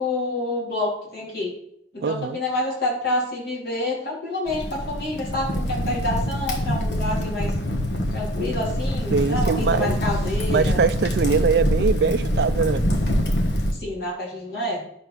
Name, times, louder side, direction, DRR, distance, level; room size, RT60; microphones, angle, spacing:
voice 1, 0.0-1.5 1.9-7.5 8.1-10.8 13.7-14.8, left 1 dB, 60° left, 3.6 m, -28 dB
voice 2, 2.0-2.4 9.1-10.0 10.5-12.8, right 5 dB, 65° right, 0.4 m, -22 dB
Crackle, 4.5-13.7, equal, 85° left, 1.3 m, -24 dB
11.0 x 4.5 x 5.9 m
head